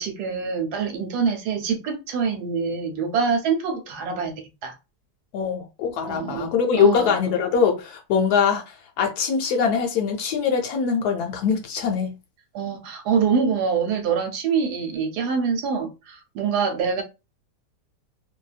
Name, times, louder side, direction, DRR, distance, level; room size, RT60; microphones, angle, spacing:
voice 1, 0.0-4.8 6.1-7.1 12.5-17.0, right 6 dB, 75° right, 1.1 m, -25 dB
voice 2, 5.3-8.6 9.0-12.1, left 6 dB, 70° left, 1.1 m, -22 dB
2.7 x 2.2 x 2.3 m
omnidirectional pair, 1.8 m